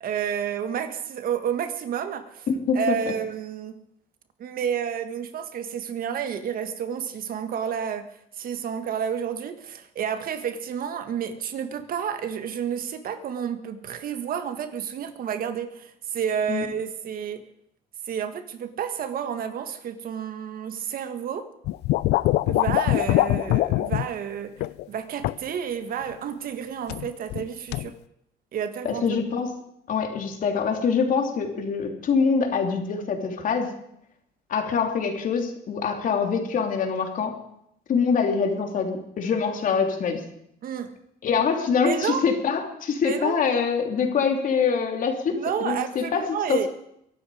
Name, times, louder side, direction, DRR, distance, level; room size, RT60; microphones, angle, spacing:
voice 1, 0.0-2.5 2.7-3.8 4.4-8.1 8.4-17.4 18.1-21.5 22.5-24.5 24.9-27.9 28.5-29.1 40.6-40.9 41.8-42.2 43.0-43.4 45.3-46.7, right 8 dB, 60° right, 9 dB, 1.7 m, -30 dB
voice 2, 2.5-2.9 16.5-16.7 28.8-29.5 29.9-33.7 34.5-37.4 37.9-40.2 41.2-46.7, left 5 dB, 50° left, 4 dB, 3.3 m, -24 dB
sound 1, 21.7-24.1 24.6-24.8 25.2-25.5 26.9-27.4 27.7-27.9, left 17 dB, 80° left, 0.5 m, -23 dB
23.0 x 12.5 x 5.0 m, 0.75 s
cardioid pair, 110°, 17 cm